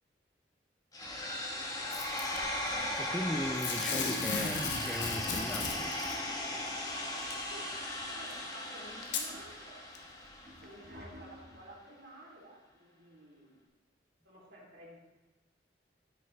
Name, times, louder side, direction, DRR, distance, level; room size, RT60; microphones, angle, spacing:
sound 1, 0.9-10.9, left 1 dB, 20° left, 1.1 m, -37 dB
Packing tape duct tape / Tearing, 1.9-2.4 3.6-6.2 7.3-7.4 8.3-8.4 9.0-9.3 9.9-10.0, left 5 dB, 75° left, 1.1 m, -36 dB
Toilet flush, 2.6-7.0 7.3-7.4 7.6-8.4 8.9-11.7, equal, 60° right, 1.7 m, -52 dB
voice 1, 3.0-5.9, equal, ahead, 6 dB, 0.3 m, -38 dB
voice 2, 8.1-9.8 10.6-13.5 14.2-15.0, right 1 dB, 80° right, -4 dB, 3.3 m, -53 dB
13.0 x 6.6 x 3.3 m, 1.1 s
head